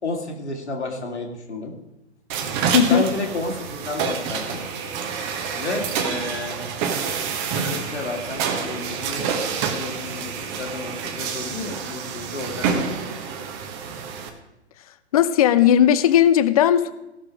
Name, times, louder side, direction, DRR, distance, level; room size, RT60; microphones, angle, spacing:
voice 1, 0.0-1.7 2.8-4.6 5.5-6.7 7.2-9.3 9.7-12.9, left 3 dB, 70° left, 2 dB, 2.6 m, -31 dB
sound 1, 2.3-14.3, right 6 dB, 25° right, 1.1 m, -28 dB
voice 2, 2.7-3.0 15.1-16.9, left 9 dB, 35° left, 14 dB, 0.5 m, -16 dB
17.0 x 6.5 x 4.9 m, 0.93 s
figure-of-eight pair, 120°, 35 cm